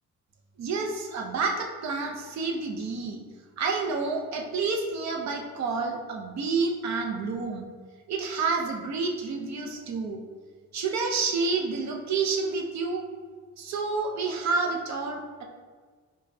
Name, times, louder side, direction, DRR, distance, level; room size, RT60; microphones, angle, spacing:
voice 1, 0.6-3.2 3.6-7.7 8.1-10.2 10.7-13.0 13.6-15.4, right 4 dB, 65° right, 2 dB, 0.7 m, -29 dB
4.9 x 2.3 x 2.7 m, 1.5 s
cardioid pair, 90°, 30 cm